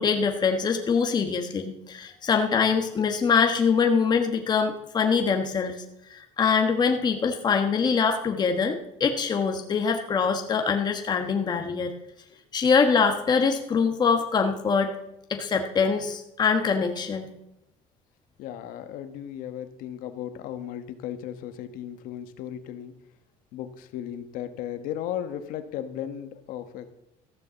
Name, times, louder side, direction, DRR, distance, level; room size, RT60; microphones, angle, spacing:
voice 1, 0.0-5.8 6.1-11.9 12.5-14.9 15.3-17.3, left 5 dB, 30° left, 4 dB, 1.3 m, -24 dB
voice 2, 18.4-22.9 23.5-26.9, left 10 dB, 70° left, 9 dB, 1.2 m, -36 dB
14.0 x 6.9 x 6.9 m, 0.83 s
cardioid pair, 130°, 15 cm